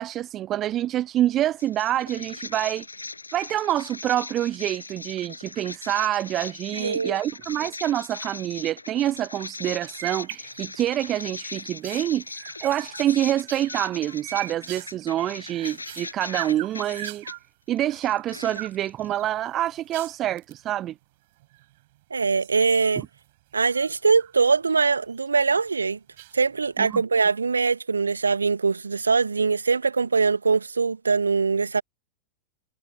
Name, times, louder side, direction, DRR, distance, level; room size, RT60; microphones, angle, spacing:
voice 1, 0.0-2.9 3.3-17.2 17.7-20.9 26.8-27.0, right 12 dB, 30° right, 1.0 m, -26 dB
sound 1, 1.6-17.3 17.8-19.1, left 3 dB, 80° left, 7.4 m, -39 dB
voice 2, 6.7-7.2 22.1-23.0 23.5-26.0 26.3-31.8, right 4 dB, 75° right, 1.8 m, -22 dB
sound 2, 9.7-10.9 11.3-17.5 17.9-18.8 19.1-20.6 21.4-22.0 22.3-24.4 24.7-25.3 26.2-26.7, right 18 dB, 50° right, 7.9 m, -41 dB
figure-of-eight pair, 90°, 0 cm